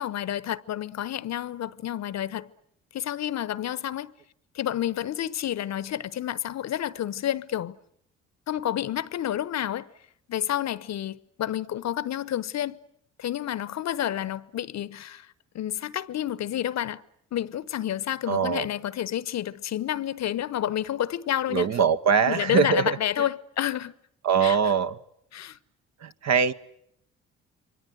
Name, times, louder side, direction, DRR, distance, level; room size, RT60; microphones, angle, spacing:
voice 1, 0.0-2.5 2.9-4.1 4.5-7.7 8.5-9.9 10.3-12.8 13.2-15.3 15.5-17.0 17.3-21.7 22.3-23.9 24.4-24.7 25.3-25.6, left 11 dB, 50° left, 1.0 m, -29 dB
voice 2, 18.3-18.7 21.5-23.0 24.2-25.0 26.0-26.5, right 6 dB, 50° right, 1.2 m, -22 dB
28.0 x 23.5 x 7.9 m
hypercardioid pair, 50°, 35 cm